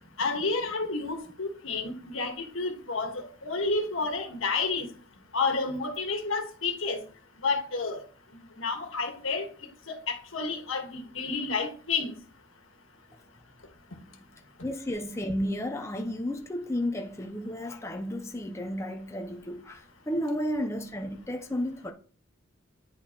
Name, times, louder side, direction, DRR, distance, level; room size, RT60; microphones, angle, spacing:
voice 1, 0.2-4.9 5.3-7.0 7.4-8.0 8.6-9.5 9.9-12.1, left 3 dB, 85° left, 1.5 m, -30 dB
voice 2, 14.6-21.9, equal, 15° left, 0.6 m, -32 dB
9.9 x 4.6 x 2.9 m
head